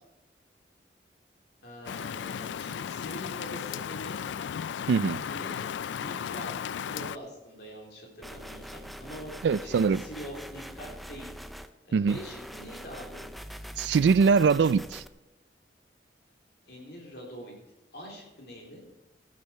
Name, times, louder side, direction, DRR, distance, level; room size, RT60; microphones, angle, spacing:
voice 1, 1.6-4.2 5.2-5.6 5.9-11.3 11.8-13.2 16.7-17.5 17.9-18.8, equal, 65° left, 3.5 m, -44 dB
Rain, 1.9-7.2, left 8 dB, 80° left, 0.3 m, -35 dB
voice 2, 4.9-5.2 9.4-10.0 11.9-12.2 13.8-15.0, right 5 dB, 75° right, 0.3 m, -22 dB
sound 1, 8.2-11.7 12.1-15.1, equal, ahead, 0.4 m, -43 dB
14.0 x 9.4 x 4.5 m
head